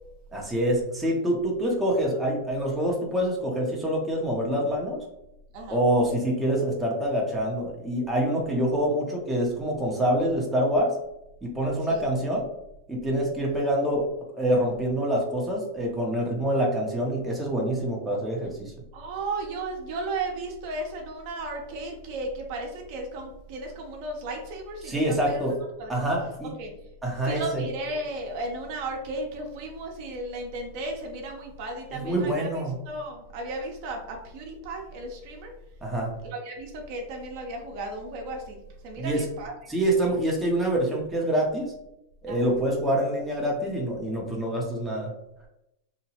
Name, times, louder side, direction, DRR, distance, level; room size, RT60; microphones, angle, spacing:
voice 1, 0.3-5.0 5.7-11.0 11.4-12.5 12.9-14.1 14.3-18.7 24.8-25.6 25.9-26.5 27.0-27.6 31.9-32.8 35.8-36.1 39.0-39.2 39.7-41.7 42.2-45.1, right 1 dB, 5° right, -3 dB, 0.7 m, -26 dB
voice 2, 18.9-25.0 25.3-25.4 25.8-26.0 26.6-26.7 27.2-32.5 32.9-35.5 36.2-38.6 38.8-39.7 42.3-42.5, right 2 dB, 55° right, 1 dB, 0.7 m, -35 dB
2.8 x 2.1 x 2.8 m, 0.84 s
supercardioid pair, 130°, 0 cm